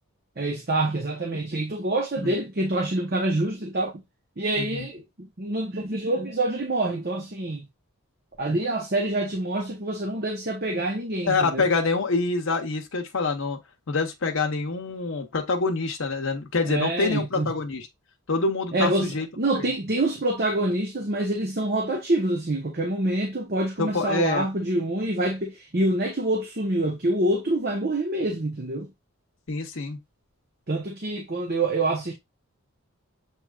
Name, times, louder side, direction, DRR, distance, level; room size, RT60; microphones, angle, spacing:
voice 1, 0.4-4.0 4.4-7.7 8.4-11.7 16.6-17.5 18.7-28.9 30.7-32.1, right 2 dB, 45° right, 0.9 m, -26 dB
voice 2, 4.6-4.9 11.2-13.6 13.9-17.9 18.3-19.3 19.5-19.7 23.8-24.5 29.5-30.0, left 3 dB, 60° left, 0.8 m, -26 dB
7.2 x 3.0 x 2.4 m
head